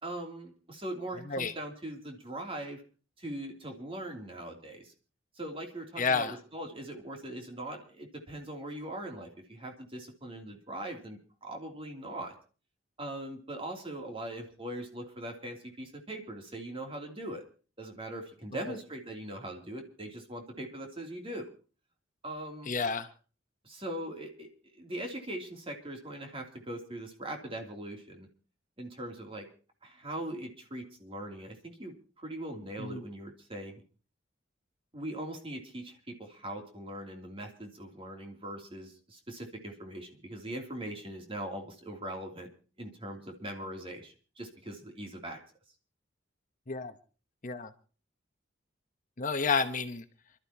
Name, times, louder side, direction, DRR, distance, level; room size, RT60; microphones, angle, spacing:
voice 1, 0.0-2.8 3.2-4.9 5.3-12.3 13.0-17.4 17.8-21.5 22.2-22.7 23.6-28.3 28.8-29.5 29.8-33.8 34.9-42.5 42.8-45.4, right 1 dB, 30° right, 3.0 m, -41 dB
voice 2, 6.0-6.4 18.7-18.8 22.6-23.1 32.8-33.0 46.7-46.9 47.4-47.7 49.2-50.0, left 4 dB, 45° left, 1.0 m, -30 dB
28.5 x 12.5 x 2.9 m
head